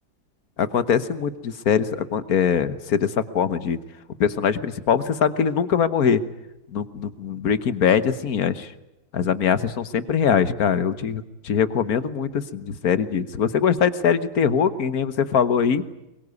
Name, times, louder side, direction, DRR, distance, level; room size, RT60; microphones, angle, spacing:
voice 1, 0.6-3.8 4.2-6.2 6.7-8.7 9.1-15.8, left 7 dB, 55° left, 14 dB, 1.5 m, -22 dB
23.5 x 22.5 x 9.6 m, 0.91 s
omnidirectional pair, 2.0 m